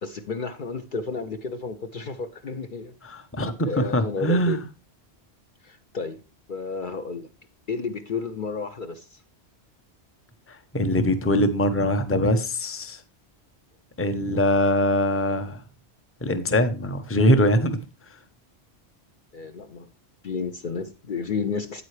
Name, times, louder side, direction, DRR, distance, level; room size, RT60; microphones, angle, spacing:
voice 1, 0.0-2.9 3.6-4.6 5.6-6.2 6.5-7.3 7.7-9.2 19.3-19.9 20.2-21.8, left 5 dB, 55° left, 0.8 m, -31 dB
voice 2, 3.0-4.6 10.5-13.0 14.0-15.6 16.2-17.8, left 1 dB, 15° left, 0.7 m, -22 dB
9.0 x 8.4 x 3.2 m
omnidirectional pair, 1.1 m